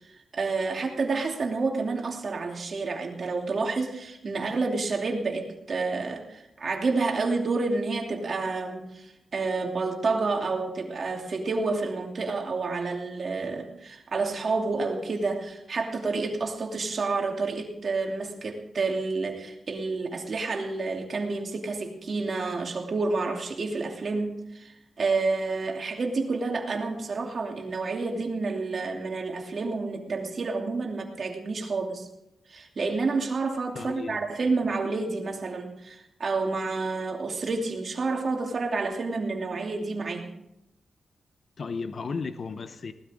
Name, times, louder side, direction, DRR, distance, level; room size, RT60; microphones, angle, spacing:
voice 1, 0.3-32.1 32.5-40.3, right 3 dB, 55° right, 1 dB, 2.8 m, -29 dB
voice 2, 33.7-34.6 41.6-42.9, left 4 dB, 55° left, 10 dB, 0.9 m, -35 dB
19.0 x 13.0 x 3.7 m, 0.83 s
cardioid pair, 95°, 0 cm